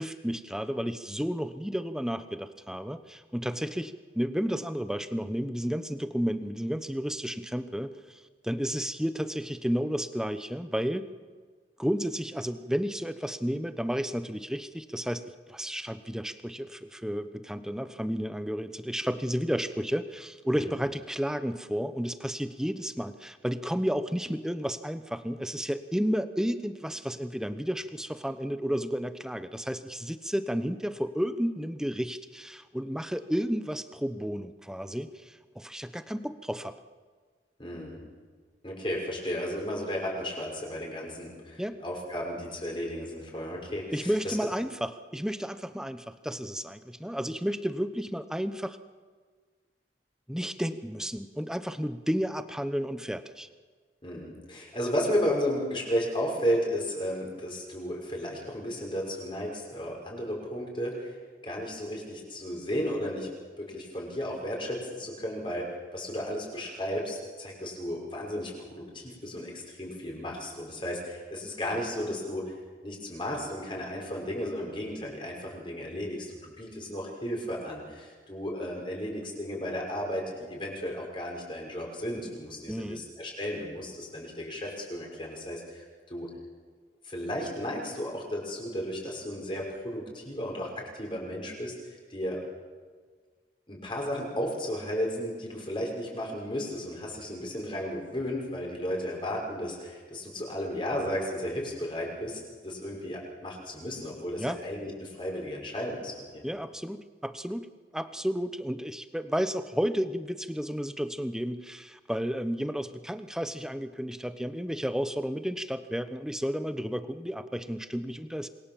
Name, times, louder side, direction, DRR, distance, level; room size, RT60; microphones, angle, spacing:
voice 1, 0.0-11.1 11.8-36.7 41.6-41.8 43.9-48.8 50.3-53.5 82.7-83.0 104.4-104.6 106.4-107.7 107.9-118.5, equal, 5° right, 11 dB, 1.0 m, -32 dB
voice 2, 37.6-38.0 38.6-44.3 54.0-61.2 61.4-63.3 63.6-72.5 72.8-86.3 87.0-91.8 92.1-92.4 93.7-106.4, equal, 30° left, -1 dB, 6.1 m, -34 dB
27.0 x 22.0 x 7.3 m, 1.5 s
head